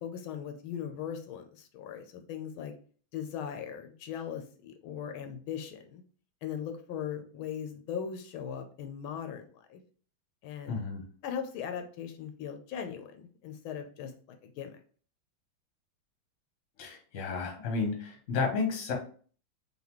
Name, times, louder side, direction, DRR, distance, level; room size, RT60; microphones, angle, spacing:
voice 1, 0.0-2.7 3.1-6.0 6.4-9.8 10.4-10.8 11.2-14.1 14.4-14.8, left 8 dB, 85° left, 6 dB, 1.4 m, -39 dB
voice 2, 10.7-11.0 16.8-18.9, left 4 dB, 45° left, 1 dB, 1.2 m, -32 dB
4.0 x 3.5 x 3.0 m, 0.43 s
omnidirectional pair, 2.2 m